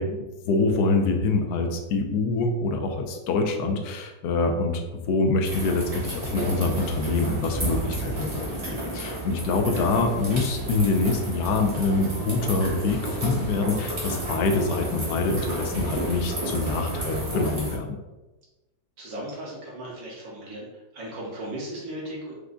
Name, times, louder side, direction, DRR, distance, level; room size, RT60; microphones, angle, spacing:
voice 1, 0.0-17.9, left 3 dB, 70° left, 3 dB, 1.1 m, -25 dB
sound 1, 5.4-17.8, right 1 dB, 25° right, 0.9 m, -32 dB
voice 2, 19.0-20.7 20.9-22.4, right 1 dB, 70° right, -5 dB, 2.0 m, -36 dB
4.8 x 2.3 x 3.8 m, 1.1 s
omnidirectional pair, 2.1 m